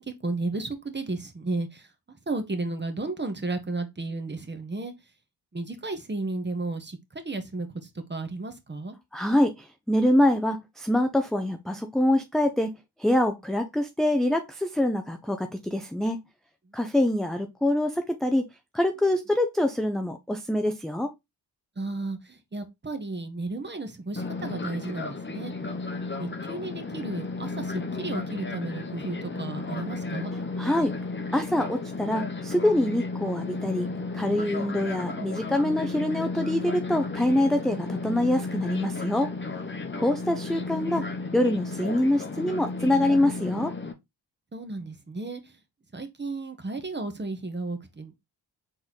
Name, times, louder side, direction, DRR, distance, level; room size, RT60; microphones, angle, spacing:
voice 1, 0.0-1.9 2.3-4.9 5.5-8.9 16.7-16.8 21.8-25.5 26.2-30.3 44.5-45.6 45.9-48.2, right 2 dB, 20° right, 1.2 m, -33 dB
voice 2, 9.1-16.2 16.7-18.5 18.7-21.1 30.6-30.9 31.3-39.3 39.9-41.1 41.3-43.7, left 1 dB, ahead, 0.5 m, -25 dB
Fixed-wing aircraft airplane, 24.2-43.9, left 3 dB, 25° left, 1.0 m, -34 dB
4.0 x 3.1 x 3.8 m
supercardioid pair, 55°, 48 cm